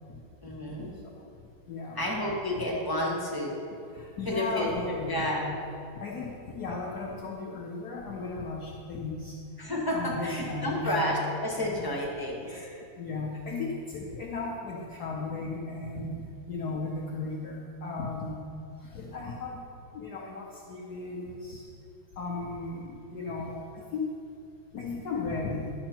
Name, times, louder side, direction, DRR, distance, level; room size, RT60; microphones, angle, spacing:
voice 1, 0.4-0.9 1.9-3.5 4.2-5.5 9.6-12.5, left 1 dB, 10° left, -3 dB, 1.3 m, -30 dB
voice 2, 1.7-2.0 3.9-5.5 5.9-9.3 9.9-11.0 12.4-18.4 18.9-19.6 19.9-21.6 22.2-24.1 24.7-25.7, left 3 dB, 60° left, -3 dB, 1.2 m, -36 dB
11.0 x 6.7 x 4.4 m, 2.5 s
omnidirectional pair, 2.2 m